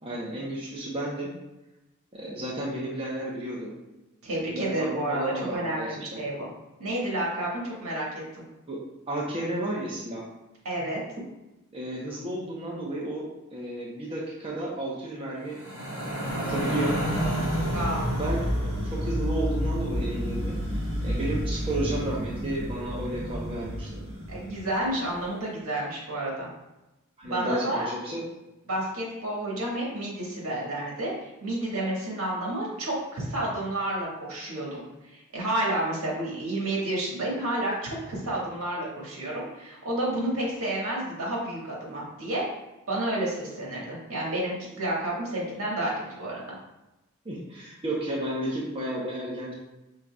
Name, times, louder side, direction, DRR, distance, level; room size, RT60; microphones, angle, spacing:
voice 1, 0.0-1.3 2.1-3.7 4.5-6.2 8.7-8.8 9.1-10.2 11.7-13.3 13.5-15.6 16.0-17.0 18.1-18.4 18.8-20.6 21.0-24.0 27.2-28.2 47.2-49.5, right 1 dB, 25° right, -5 dB, 0.7 m, -32 dB
voice 2, 4.2-6.5 6.8-8.1 8.3-8.4 10.6-11.0 17.7-18.1 24.3-26.5 27.2-27.9 28.7-34.8 35.1-42.4 42.9-46.4, right 1 dB, 75° right, -4 dB, 1.5 m, -30 dB
sound 1, 15.5-24.8, equal, 60° right, 1.2 m, -30 dB
5.6 x 3.7 x 2.3 m, 0.98 s
head